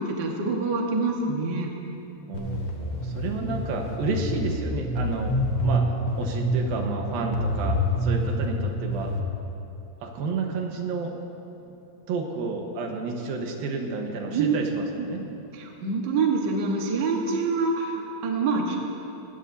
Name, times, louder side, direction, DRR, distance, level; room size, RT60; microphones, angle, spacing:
voice 1, 0.0-1.7 14.3-14.6 15.0-15.1 15.5-18.8, right 4 dB, 50° right, 0 dB, 1.3 m, -26 dB
sound 1, 2.3-9.2, equal, 75° left, 1.1 m, -27 dB
voice 2, 2.3-9.1 10.0-11.1 11.6-11.7 12.1-15.2, right 4 dB, 90° right, 2 dB, 3.1 m, -31 dB
19.5 x 18.0 x 2.8 m, 2.9 s
omnidirectional pair, 4.1 m